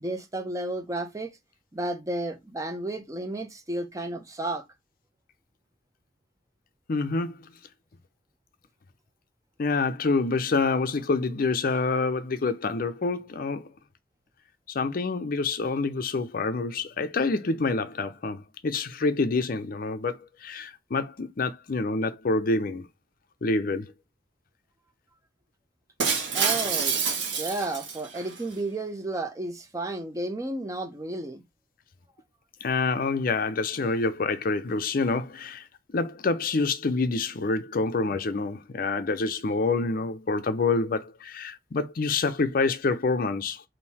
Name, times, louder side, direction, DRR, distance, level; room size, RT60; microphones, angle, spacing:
voice 1, 0.0-1.3 1.7-4.6 26.3-31.4, right 2 dB, 20° right, 0.6 m, -32 dB
voice 2, 6.9-7.4 9.6-13.7 14.7-22.9 23.4-23.9 32.6-35.6 35.9-43.6, left 3 dB, 50° left, 0.5 m, -27 dB
Shatter, 26.0-28.4, right 5 dB, 75° right, 1.1 m, -27 dB
3.7 x 2.7 x 4.1 m
head